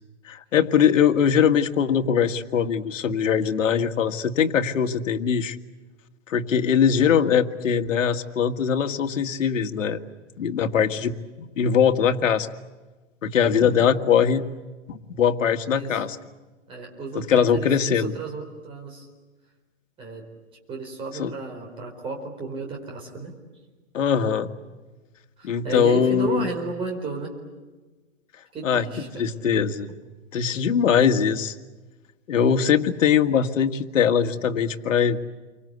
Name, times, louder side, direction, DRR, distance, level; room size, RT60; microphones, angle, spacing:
voice 1, 0.3-5.6 6.3-10.0 10.4-12.5 13.2-14.4 14.9-16.2 17.2-18.1 21.1-21.3 23.9-24.5 25.4-26.5 28.6-29.9 30.3-31.6 32.3-35.2, left 7 dB, 85° left, 7 dB, 1.9 m, -21 dB
voice 2, 13.5-13.9 15.7-16.0 16.7-19.1 20.0-20.3 20.7-23.3 25.4-27.3 28.5-29.2, right 4 dB, 15° right, 2 dB, 4.4 m, -33 dB
29.0 x 24.5 x 8.2 m, 1.2 s
hypercardioid pair, 170°, 37 cm